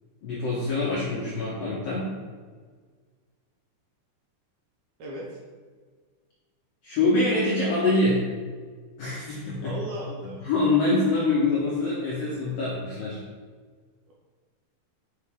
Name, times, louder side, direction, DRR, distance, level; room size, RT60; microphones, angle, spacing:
voice 1, 0.2-2.1 6.8-8.2 9.0-9.8 10.4-13.2, left 2 dB, 75° left, -6 dB, 1.5 m, -25 dB
voice 2, 5.0-5.4 9.6-10.4 14.1-14.2, right 1 dB, 70° right, -3 dB, 2.0 m, -36 dB
5.6 x 5.1 x 3.6 m, 1.5 s
omnidirectional pair, 4.0 m